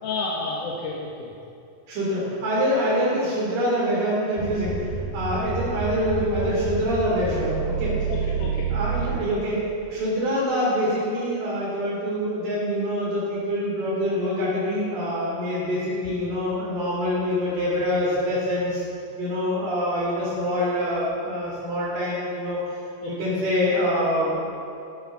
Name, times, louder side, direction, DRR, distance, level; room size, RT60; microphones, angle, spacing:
voice 1, 0.0-1.3 8.1-8.7 16.1-16.2 23.0-23.3, left 3 dB, 65° left, -4 dB, 2.5 m, -31 dB
voice 2, 1.9-4.8 5.1-8.1 8.7-9.6 9.9-18.8 19.2-22.6 23.0-24.4, equal, 90° right, -7 dB, 5.2 m, -25 dB
sound 1, 4.4-9.6, right 5 dB, 60° right, 4.1 m, -29 dB
13.5 x 12.5 x 5.7 m, 2.5 s
omnidirectional pair, 4.4 m